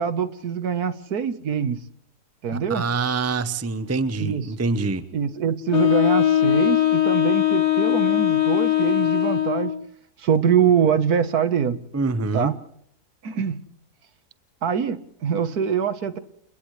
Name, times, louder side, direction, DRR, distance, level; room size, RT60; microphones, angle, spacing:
voice 1, 0.0-1.8 2.4-2.8 4.2-4.5 5.1-9.7 10.2-11.8 12.3-12.6 13.2-13.6 14.6-16.2, right 7 dB, 70° right, 12 dB, 1.7 m, -24 dB
voice 2, 2.5-5.0 11.9-12.5, right 3 dB, 15° right, 12 dB, 0.7 m, -25 dB
Wind instrument woodwind instrument, 5.7-9.8, left 13 dB, 85° left, 2.3 m, -20 dB
30.0 x 30.0 x 3.3 m, 0.70 s
omnidirectional pair, 1.7 m